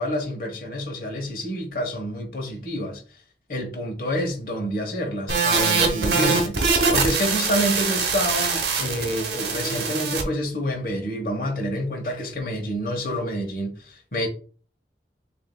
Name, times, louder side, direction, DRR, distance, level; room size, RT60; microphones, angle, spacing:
voice 1, 0.0-3.0 3.5-14.3, equal, 50° left, 1.1 m, -28 dB
sound 1, 5.3-10.2, right 4 dB, 75° right, 0.7 m, -23 dB
6.2 x 2.7 x 2.2 m
head